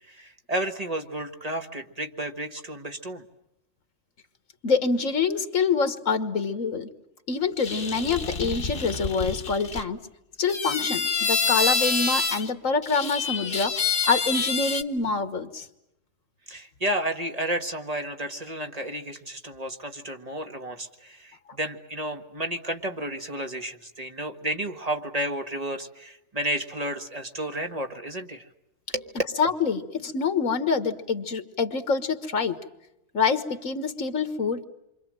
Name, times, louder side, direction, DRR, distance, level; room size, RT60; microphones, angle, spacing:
voice 1, 0.1-3.2 16.5-28.4 28.9-29.2, right 1 dB, 30° right, 5 dB, 1.6 m, -32 dB
voice 2, 4.6-6.9 7.3-10.0 10.4-13.7 14.1-15.7 29.4-32.6 33.1-34.7, left 5 dB, 75° left, 9 dB, 1.8 m, -26 dB
sound 1, 7.6-9.8 10.5-12.5 12.8-14.8, left 4 dB, 45° left, 1.4 m, -27 dB
28.5 x 25.0 x 7.6 m, 0.85 s
omnidirectional pair, 1.4 m